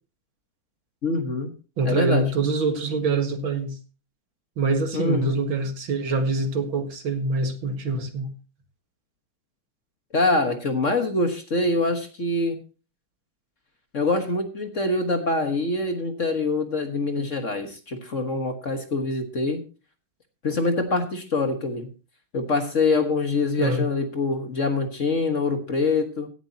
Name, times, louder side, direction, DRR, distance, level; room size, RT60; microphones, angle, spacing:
voice 1, 1.0-1.5 1.8-2.3 4.9-5.3 10.1-12.6 13.9-19.6 20.4-21.9 22.3-26.3, left 3 dB, 40° left, 5 dB, 1.6 m, -24 dB
voice 2, 1.8-3.8 4.6-8.3 23.6-23.9, right 3 dB, 70° right, 6 dB, 2.5 m, -25 dB
16.5 x 11.0 x 2.8 m, 0.34 s
omnidirectional pair, 2.3 m